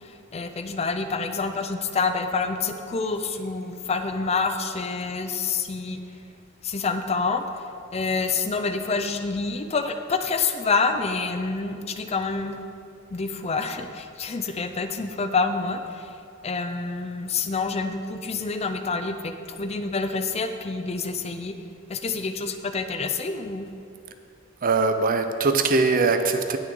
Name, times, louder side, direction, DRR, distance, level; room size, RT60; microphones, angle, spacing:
voice 1, 0.3-6.0 6.6-7.4 7.9-12.6 13.1-16.1 16.4-21.6 21.9-23.7, left 4 dB, 30° left, 8 dB, 0.5 m, -27 dB
voice 2, 24.6-26.6, right 3 dB, 45° right, 8 dB, 0.6 m, -21 dB
17.5 x 6.3 x 3.8 m, 2.6 s
head